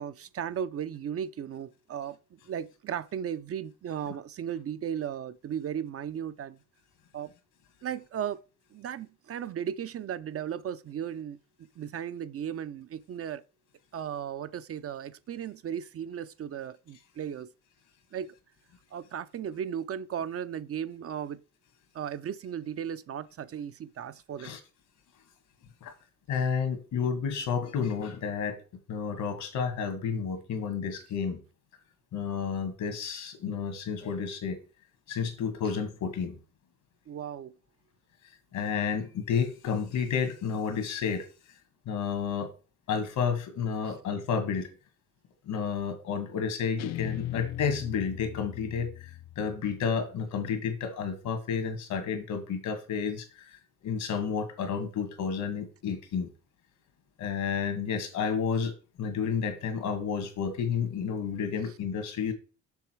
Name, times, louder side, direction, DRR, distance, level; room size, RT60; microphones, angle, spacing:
voice 1, 0.0-6.6 7.1-7.3 7.8-8.4 8.7-11.4 11.8-13.4 13.9-17.5 18.1-18.4 18.9-21.4 21.9-24.5 37.1-37.5 43.8-44.0, right 9 dB, 50° right, 0.6 m, -36 dB
voice 2, 26.3-28.6 28.9-31.4 32.1-34.6 35.1-36.4 38.5-41.3 41.9-42.5 42.9-44.7 45.5-48.9 49.4-53.3 53.8-56.3 57.2-58.7 59.0-62.3, left 6 dB, 80° left, 2.0 m, -31 dB
Guitar, 46.8-50.0, left 14 dB, 60° left, 0.4 m, -38 dB
7.0 x 6.1 x 4.6 m
cardioid pair, 90°, 30 cm